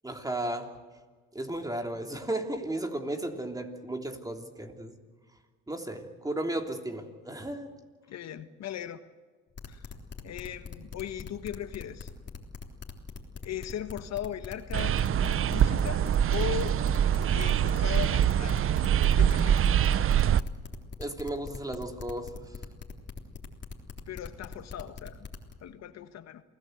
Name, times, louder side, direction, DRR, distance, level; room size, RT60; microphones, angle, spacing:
voice 1, 0.0-0.7 1.3-4.9 5.7-7.7 21.0-22.4, right 1 dB, 10° right, 4 dB, 3.2 m, -34 dB
voice 2, 8.1-9.0 9.7-9.9 10.2-12.1 13.4-16.0 16.3-16.8 17.3-18.6 19.0-20.1 24.1-25.2 25.6-26.4, left 10 dB, 65° left, 10 dB, 1.3 m, -38 dB
sound 1, 9.6-25.5, left 5 dB, 35° left, 3.5 m, -41 dB
sound 2, 14.7-20.4, right 9 dB, 45° right, 0.7 m, -24 dB
28.0 x 17.0 x 8.0 m, 1.4 s
supercardioid pair, 85°, 29 cm